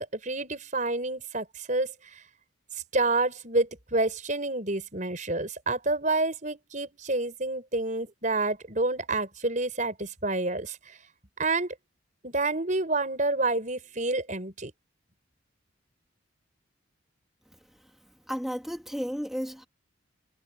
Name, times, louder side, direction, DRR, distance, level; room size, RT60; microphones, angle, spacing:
voice 1, 0.0-1.9 2.9-11.0 11.4-11.7 12.2-14.7, right 2 dB, 40° right, 5.6 m, -28 dB
voice 2, 18.3-19.7, equal, ahead, 2.3 m, -33 dB
head